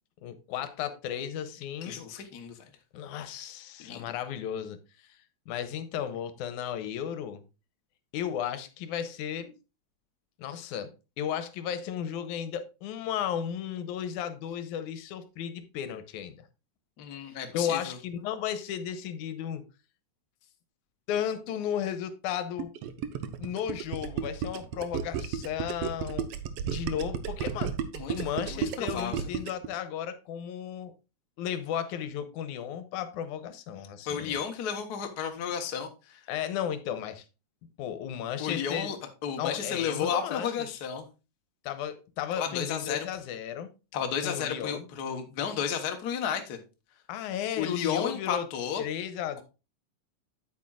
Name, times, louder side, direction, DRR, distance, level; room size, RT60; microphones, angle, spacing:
voice 1, 0.2-2.0 2.9-4.8 5.1-5.2 5.5-7.4 8.1-9.5 10.4-10.9 11.2-16.3 17.2-19.6 21.1-22.7 23.4-26.3 26.6-27.8 28.1-30.9 31.4-34.4 36.3-37.2 37.8-38.9 39.4-40.7 41.6-43.7 44.2-44.9 47.1-48.5 48.8-49.4, left 9 dB, 85° left, 2.2 m, -34 dB
voice 2, 1.8-2.6 3.8-4.1 17.0-18.0 27.9-28.1 28.5-29.3 34.1-36.2 38.4-39.0 39.2-41.1 42.3-43.1 43.9-46.6 47.6-48.8, left 8 dB, 65° left, 0.9 m, -32 dB
Gurgling, 22.6-29.7, right 8 dB, 80° right, 1.4 m, -33 dB
8.6 x 8.2 x 2.4 m
omnidirectional pair, 3.5 m